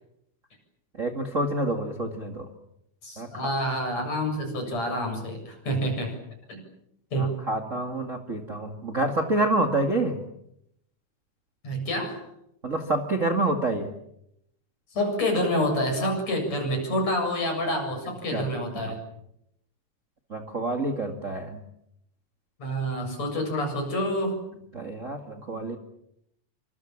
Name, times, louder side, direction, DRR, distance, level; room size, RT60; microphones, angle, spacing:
voice 1, 1.0-2.5 3.2-3.5 7.1-10.2 12.6-13.9 18.3-18.4 18.7-18.9 20.3-21.6 24.7-25.8, right 2 dB, 25° right, 3 dB, 2.0 m, -28 dB
voice 2, 3.0-6.2 6.5-6.6 7.1-7.3 11.6-12.2 14.9-19.0 22.6-24.4, equal, 45° left, 3 dB, 8.8 m, -27 dB
28.5 x 25.5 x 7.5 m, 0.78 s
omnidirectional pair, 4.2 m